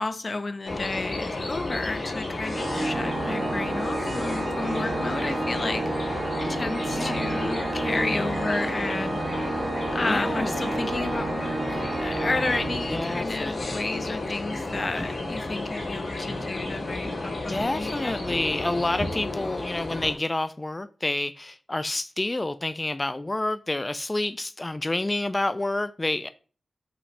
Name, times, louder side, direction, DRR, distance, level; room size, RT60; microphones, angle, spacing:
voice 1, 0.0-6.2 6.5-9.2 9.9-18.5, left 3 dB, 45° left, 0.8 m, -32 dB
sound 1, 0.7-20.1, left 2 dB, 70° left, 2.9 m, -32 dB
Organ, 2.5-13.3, right 3 dB, 45° right, 2.3 m, -31 dB
voice 2, 10.0-10.7 12.9-13.7 17.5-26.3, left 2 dB, 25° left, 0.3 m, -29 dB
5.7 x 3.1 x 5.4 m
wide cardioid pair, 80°, 0 cm